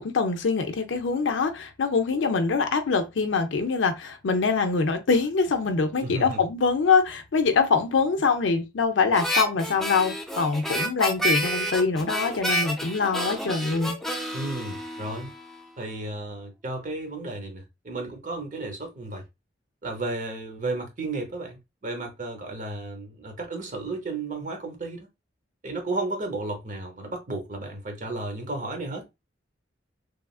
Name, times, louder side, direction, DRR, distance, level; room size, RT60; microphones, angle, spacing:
voice 1, 0.0-14.0, left 4 dB, 80° left, 0.5 m, -24 dB
voice 2, 6.0-6.4 14.3-15.3 15.8-19.2 19.8-25.1 25.6-29.1, right 2 dB, 40° right, 0.8 m, -33 dB
Harmonica, 9.1-15.6, equal, ahead, 0.4 m, -29 dB
3.1 x 2.4 x 2.3 m
head